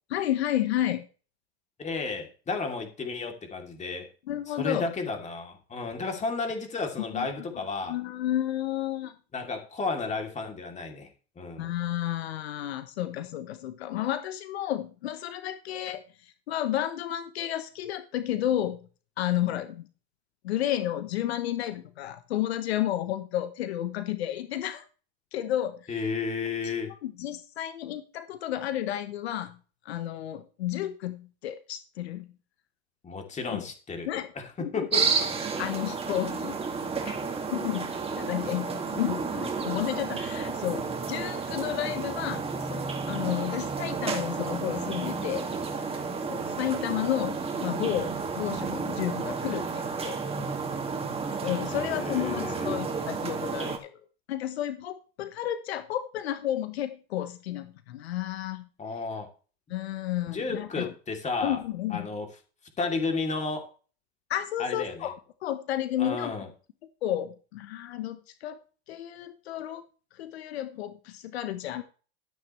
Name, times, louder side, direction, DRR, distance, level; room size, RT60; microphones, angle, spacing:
voice 1, 0.1-1.1 4.3-4.9 7.1-7.3 7.9-9.1 11.6-18.8 19.2-19.9 20.4-24.8 25.3-26.0 26.6-29.6 29.8-32.3 33.5-33.6 34.0-34.3 34.6-34.9 35.6-36.6 37.0-37.2 37.5-45.4 46.3-50.2 51.4-53.9 54.3-58.7 59.7-60.9 61.4-62.1 64.3-65.1 65.4-66.3 67.0-68.6 68.9-69.8 70.2-71.8, left 12 dB, 80° left, 11 dB, 1.2 m, -32 dB
voice 2, 1.8-4.1 4.5-8.0 9.3-11.1 11.3-11.7 25.9-26.9 33.0-34.1 34.3-35.3 51.7-52.8 58.8-59.3 60.3-61.6 61.9-62.3 62.8-63.7 64.6-65.1 66.0-66.5, left 4 dB, 20° left, 4 dB, 3.3 m, -33 dB
sound 1, 34.9-53.8, right 5 dB, 20° right, 2.4 m, -31 dB
13.0 x 9.5 x 3.3 m, 0.36 s
hypercardioid pair, 110°, 31 cm